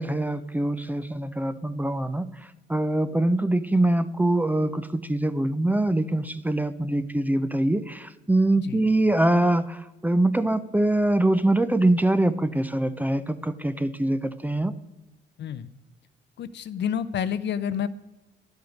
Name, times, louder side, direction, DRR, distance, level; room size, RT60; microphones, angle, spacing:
voice 1, 0.0-14.7, right 1 dB, 10° right, 13 dB, 0.5 m, -24 dB
voice 2, 16.4-17.9, left 8 dB, 60° left, 14 dB, 0.6 m, -29 dB
11.0 x 8.0 x 5.1 m, 1.0 s
cardioid pair, 90°, 20 cm